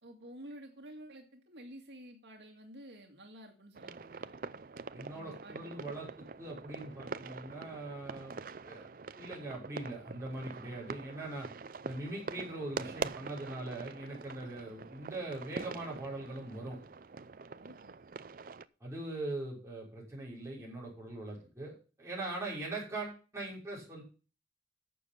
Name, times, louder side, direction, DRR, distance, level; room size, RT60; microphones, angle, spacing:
voice 1, 0.0-4.4 5.1-6.1 14.8-14.9 17.6-18.0, right 1 dB, 75° right, 2 dB, 2.2 m, -51 dB
sound 1, 3.8-18.7, right 4 dB, 50° right, 0.5 m, -44 dB
voice 2, 4.9-8.4 8.6-8.9 9.1-11.5 11.8-16.8 18.8-24.0, right 2 dB, 15° right, -5 dB, 5.9 m, -41 dB
11.5 x 7.1 x 5.7 m, 0.35 s
head